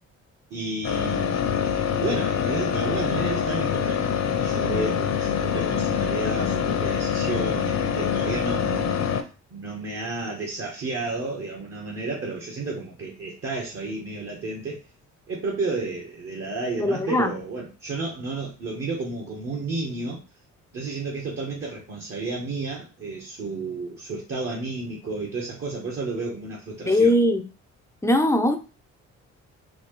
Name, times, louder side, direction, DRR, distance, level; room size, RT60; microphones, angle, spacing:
voice 1, 0.5-1.6 1.9-4.2 4.4-9.1 9.5-14.8 15.3-20.2 20.7-27.1, right 3 dB, 50° right, 1.1 m, -32 dB
sound 1, 0.8-9.2, left 7 dB, 60° left, 0.7 m, -25 dB
voice 2, 16.8-17.3 26.9-27.4 28.0-28.6, left 1 dB, 10° left, 0.5 m, -20 dB
4.3 x 2.7 x 3.1 m
cardioid pair, 90°, 30 cm